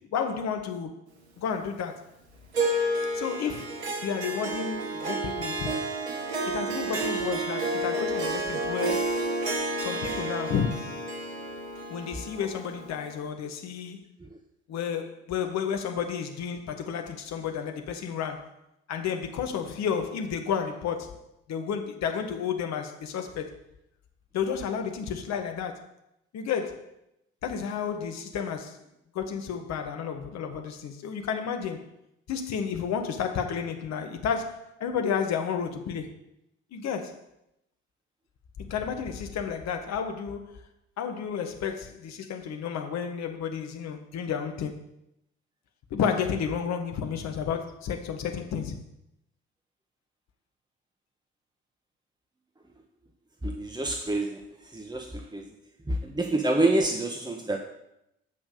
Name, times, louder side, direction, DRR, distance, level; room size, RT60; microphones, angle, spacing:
voice 1, 0.1-0.9 1.4-2.0 3.1-5.7 6.5-9.1 9.8-10.9 11.9-14.0 14.7-18.5 18.9-23.5 24.3-25.9 26.3-26.9 27.4-28.8 29.2-31.9 32.3-36.1 36.7-37.2 38.6-40.6 41.0-44.7 45.9-48.8, left 7 dB, 55° left, 1.7 m, -31 dB
Harp, 2.5-13.1, right 1 dB, 80° right, 1.3 m, -30 dB
voice 2, 53.4-54.4 54.7-55.4 55.9-57.6, right 2 dB, 15° right, 1.6 m, -27 dB
15.5 x 6.2 x 6.7 m
figure-of-eight pair, 45°, 32 cm